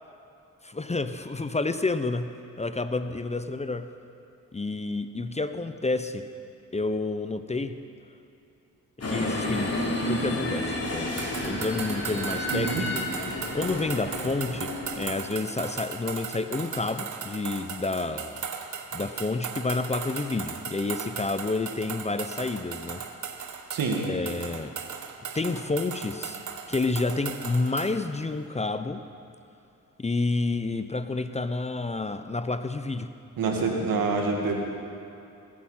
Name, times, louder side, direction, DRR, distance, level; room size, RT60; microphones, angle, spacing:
voice 1, 0.6-2.3 2.6-3.9 4.5-6.2 6.7-7.7 9.1-12.9 13.2-18.4 18.9-23.0 24.0-24.7 25.3-26.4 26.7-29.0 30.0-33.1, left 3 dB, 20° left, 10 dB, 0.7 m, -29 dB
sound 1, 9.0-15.1, left 1 dB, 45° left, 3.3 m, -31 dB
sound 2, 11.2-28.0, right 6 dB, 60° right, 1.2 m, -37 dB
voice 2, 12.5-12.9 23.7-24.1 33.4-34.5, right 4 dB, 80° right, 1 dB, 2.3 m, -26 dB
21.0 x 8.7 x 5.8 m, 2.7 s
supercardioid pair, 60°, 34 cm